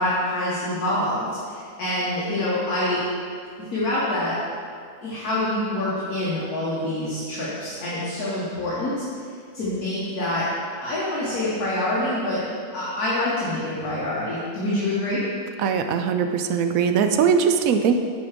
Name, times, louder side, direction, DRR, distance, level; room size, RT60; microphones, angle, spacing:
voice 1, 0.0-3.0 3.7-4.4 5.0-9.0 9.5-10.5 10.8-12.4 12.7-15.2, left 1 dB, 70° left, -8 dB, 1.8 m, -26 dB
voice 2, 15.6-17.9, right 7 dB, 70° right, 7 dB, 0.9 m, -20 dB
8.5 x 4.5 x 5.0 m, 2.1 s
omnidirectional pair, 1.7 m